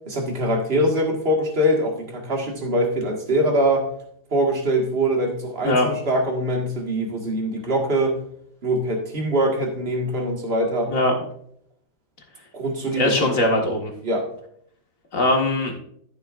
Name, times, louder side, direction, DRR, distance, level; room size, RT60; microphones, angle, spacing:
voice 1, 0.1-3.9 4.3-8.1 8.6-10.9 12.5-13.3 14.0-14.3, right 1 dB, 30° right, 1 dB, 1.8 m, -23 dB
voice 2, 13.0-13.9 15.1-15.7, left 1 dB, 45° left, 1 dB, 1.9 m, -20 dB
13.0 x 7.2 x 2.5 m, 0.68 s
omnidirectional pair, 2.1 m